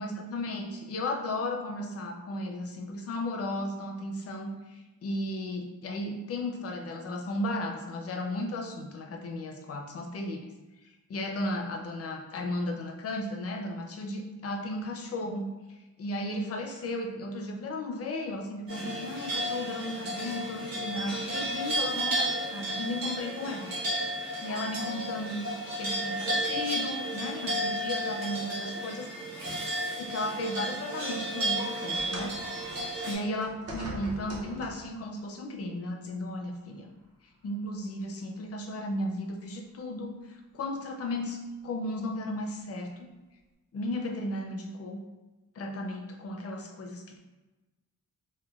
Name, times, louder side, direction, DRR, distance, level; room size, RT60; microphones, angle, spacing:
voice 1, 0.0-10.4 11.1-23.8 24.1-25.5 25.8-29.1 30.0-32.3 32.8-36.9 37.4-43.1 43.7-45.0 45.6-47.2, left 1 dB, 45° left, 3 dB, 0.4 m, -35 dB
sound 1, 18.7-33.1, right 1 dB, 85° right, 1.0 m, -33 dB
sound 2, 31.9-35.0 36.0-36.2 37.0-37.1, right 1 dB, 45° right, 0.6 m, -42 dB
3.1 x 2.2 x 2.2 m, 1.1 s
wide cardioid pair, 140°, 34 cm